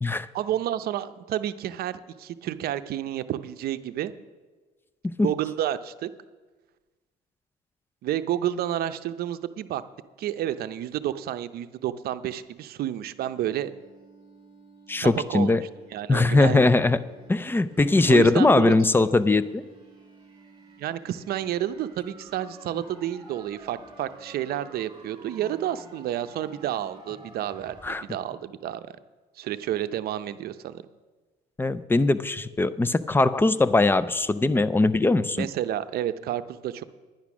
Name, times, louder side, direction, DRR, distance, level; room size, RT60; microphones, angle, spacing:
voice 1, 0.3-4.1 5.2-6.1 8.0-9.8 10.2-13.7 15.0-15.6 15.9-16.7 18.1-18.7 20.8-28.9 29.4-30.8 35.4-36.8, right 11 dB, 65° right, 12 dB, 0.6 m, -30 dB
sound 1, 13.1-27.9, right 3 dB, 25° right, 3.8 m, -51 dB
voice 2, 14.9-15.6 16.1-17.0 17.3-19.6 27.8-28.0 31.6-35.5, left 2 dB, 10° left, 15 dB, 0.4 m, -21 dB
10.5 x 10.5 x 6.1 m, 1.3 s
cardioid pair, 110°, 17 cm